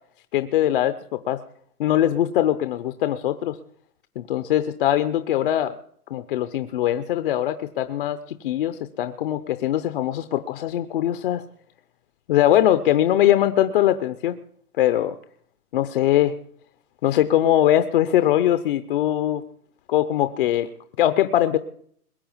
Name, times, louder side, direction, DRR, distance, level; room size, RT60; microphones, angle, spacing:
voice 1, 0.3-1.4 1.8-3.6 4.2-5.8 6.1-11.4 12.3-14.4 14.8-15.1 15.7-16.3 17.0-19.4 19.9-20.7 21.0-21.6, left 12 dB, 35° left, 10 dB, 0.7 m, -21 dB
21.5 x 8.7 x 7.1 m, 0.63 s
hypercardioid pair, 150°, 46 cm